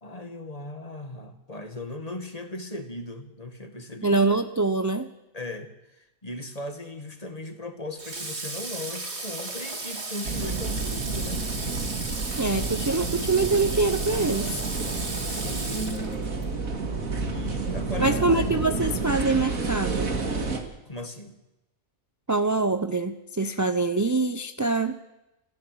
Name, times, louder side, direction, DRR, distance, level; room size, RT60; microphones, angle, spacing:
voice 1, 0.0-4.2 5.3-5.7 6.2-11.5 15.2-15.8 17.2-18.5 20.9-21.3, left 1 dB, 25° left, 7 dB, 2.1 m, -37 dB
voice 2, 4.0-5.1 12.4-14.5 18.0-20.1 22.3-25.0, right 3 dB, 20° right, 9 dB, 0.5 m, -24 dB
Water / Water tap faucet, 8.0-16.5, right 3 dB, 50° right, 2.6 m, -35 dB
sound 1, 10.2-20.6, right 3 dB, 75° right, 2.7 m, -30 dB
27.0 x 15.0 x 7.8 m, 0.96 s
omnidirectional pair, 1.5 m